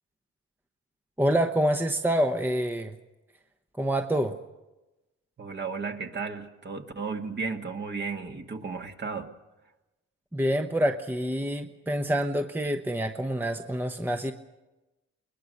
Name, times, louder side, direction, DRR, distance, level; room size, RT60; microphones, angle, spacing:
voice 1, 1.2-2.9 3.8-4.4 10.3-14.3, equal, 5° right, 6 dB, 1.0 m, -27 dB
voice 2, 5.4-9.3, right 4 dB, 35° right, 4 dB, 1.9 m, -34 dB
21.0 x 21.0 x 6.6 m, 1.1 s
cardioid pair, 90°, 30 cm